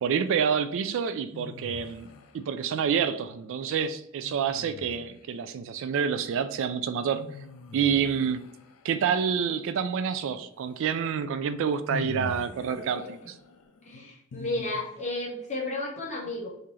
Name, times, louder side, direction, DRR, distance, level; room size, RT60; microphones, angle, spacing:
voice 1, 0.0-2.1 2.3-7.2 7.7-8.4 8.8-13.3, right 7 dB, 65° right, 11 dB, 0.3 m, -28 dB
sound 1, 1.3-2.5 4.2-5.4 7.1-9.1 10.9-11.0 11.9-15.2, left 3 dB, 80° left, 0.4 m, -42 dB
voice 2, 12.7-13.1 13.8-16.5, left 2 dB, 35° left, -2 dB, 1.2 m, -33 dB
3.7 x 2.8 x 3.1 m, 0.75 s
head